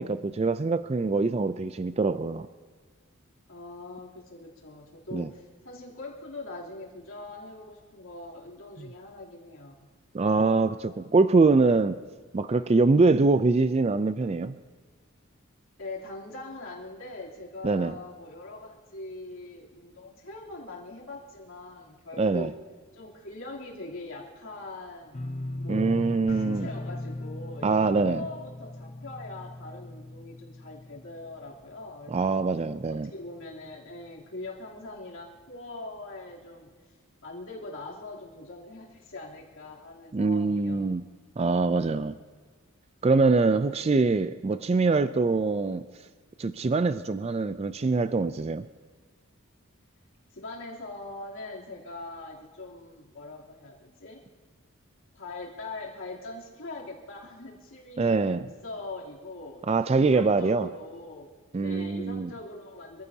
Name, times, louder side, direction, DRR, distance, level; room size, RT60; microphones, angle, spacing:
voice 1, 0.0-2.5 5.1-5.3 8.8-8.9 10.1-12.0 12.3-14.5 17.6-17.9 22.2-22.5 25.7-26.7 27.6-28.3 32.1-33.1 40.1-41.1 41.4-42.2 43.0-45.9 46.4-48.7 58.0-58.5 59.7-60.7 61.5-62.3, right 3 dB, 30° right, 12 dB, 0.3 m, -24 dB
voice 2, 3.5-9.9 15.8-22.6 22.9-25.2 25.6-32.4 32.9-37.0 37.2-40.9 50.3-54.2 55.1-61.3 61.5-63.0, left 2 dB, 70° left, -3 dB, 3.1 m, -42 dB
sound 1, 25.1-32.0 32.3-32.8 33.2-33.3, left 1 dB, 30° left, 0.7 m, -39 dB
26.5 x 15.0 x 2.8 m, 1.5 s
head